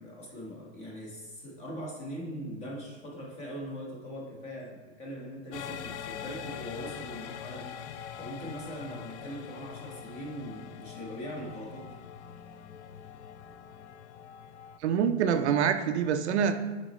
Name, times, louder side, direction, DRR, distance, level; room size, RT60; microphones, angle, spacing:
voice 1, 0.0-7.8 8.2-12.0, equal, 20° left, -2 dB, 1.2 m, -41 dB
sound 1, 5.5-14.8, left 8 dB, 85° left, 0.5 m, -43 dB
voice 2, 14.8-16.5, right 7 dB, 75° right, 7 dB, 0.6 m, -25 dB
7.3 x 4.3 x 3.1 m, 1.3 s
supercardioid pair, 160°, 34 cm